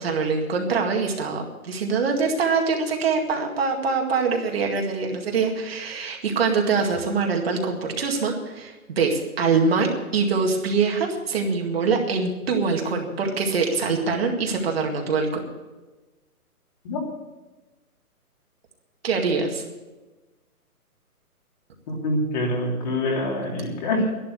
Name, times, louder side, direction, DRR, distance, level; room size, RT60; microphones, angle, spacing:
voice 1, 0.0-15.4 19.0-19.6, right 4 dB, 40° right, 1 dB, 2.1 m, -24 dB
voice 2, 21.9-24.1, left 1 dB, 30° left, -1 dB, 3.3 m, -25 dB
11.5 x 11.5 x 8.4 m, 1.2 s
hypercardioid pair, 170°, 45 cm